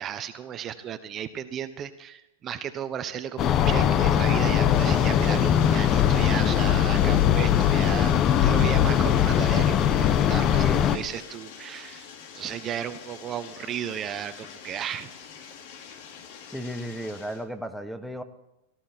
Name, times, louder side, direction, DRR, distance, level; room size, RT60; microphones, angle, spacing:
voice 1, 0.0-8.1 8.4-12.1 12.3-15.1, right 9 dB, 30° right, 10 dB, 1.0 m, -34 dB
sound 1, 3.4-11.0, left 9 dB, 35° left, 1.0 m, -21 dB
Bathtub (filling or washing), 4.1-17.4, left 7 dB, 60° left, 2.8 m, -45 dB
voice 2, 10.5-10.8 16.5-18.2, equal, ahead, 10 dB, 1.2 m, -34 dB
18.5 x 13.5 x 4.5 m, 0.88 s
hypercardioid pair, 125°, 0 cm